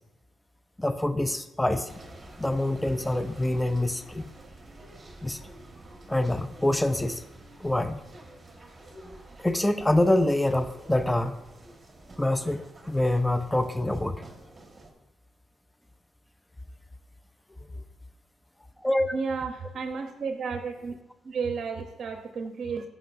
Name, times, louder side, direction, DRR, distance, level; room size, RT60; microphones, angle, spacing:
voice 1, 0.8-1.9 2.4-4.3 5.2-5.4 6.1-7.2 7.6-8.0 8.9-9.2 9.4-11.4 12.2-14.2 18.8-19.2, left 1 dB, 10° left, 11 dB, 0.5 m, -26 dB
sound 1, 1.9-14.9, right 2 dB, 20° right, 1.5 m, -49 dB
voice 2, 19.1-20.9 21.2-22.9, right 5 dB, 50° right, 5 dB, 0.7 m, -32 dB
14.5 x 6.1 x 2.6 m, 1.0 s
cardioid pair, 90°, 0 cm